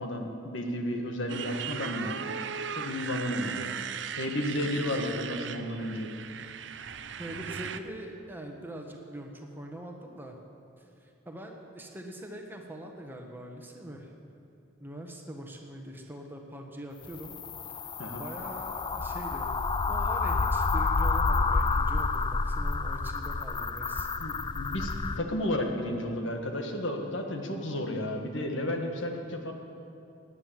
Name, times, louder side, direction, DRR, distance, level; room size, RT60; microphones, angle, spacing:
voice 1, 0.0-2.2 2.7-3.7 4.1-6.1 18.0-18.2 24.2-29.5, left 1 dB, 75° left, 3 dB, 1.6 m, -32 dB
Motorcycle, 1.3-7.8, right 7 dB, 65° right, 0.6 m, -37 dB
voice 2, 7.2-10.4 10.8-14.1 14.8-17.3 17.7-17.9 18.2-19.5 19.9-24.1, right 1 dB, 10° right, 2 dB, 1.3 m, -43 dB
sound 1, 17.0-25.2, left 4 dB, 25° left, 0.4 m, -29 dB
18.0 x 9.8 x 7.6 m, 2.6 s
head